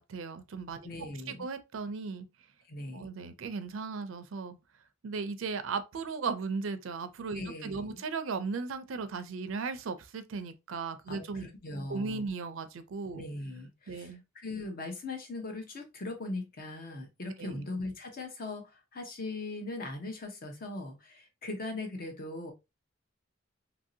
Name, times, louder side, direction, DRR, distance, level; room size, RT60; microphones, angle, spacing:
voice 1, 0.0-0.9 1.3-2.3 2.9-4.6 5.0-11.5 11.9-13.2 13.9-14.2 17.4-17.7, right 4 dB, 70° right, 0.4 m, -36 dB
voice 2, 0.8-1.4 2.7-3.1 7.3-8.0 11.1-12.3 13.1-22.5, left 2 dB, 45° left, 0.8 m, -40 dB
2.9 x 2.6 x 2.6 m
head